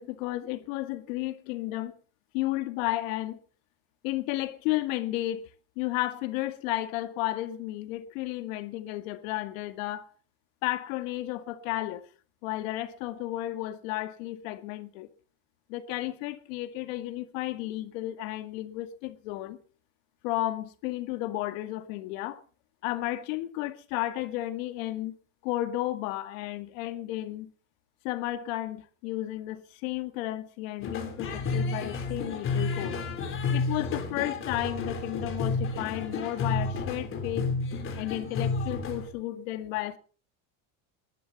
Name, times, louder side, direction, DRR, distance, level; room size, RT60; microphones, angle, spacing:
voice 1, 0.0-2.0 2.3-3.4 4.0-5.5 5.8-10.1 10.6-12.1 12.4-15.1 15.7-19.6 20.2-22.4 22.8-25.1 25.4-27.5 28.0-33.0 33.5-37.5 38.0-40.0, left 16 dB, 80° left, 2.0 m, -33 dB
sound 1, 30.8-39.1, left 4 dB, 30° left, 3.6 m, -31 dB
21.0 x 12.0 x 4.1 m
cardioid pair, 165°, 40 cm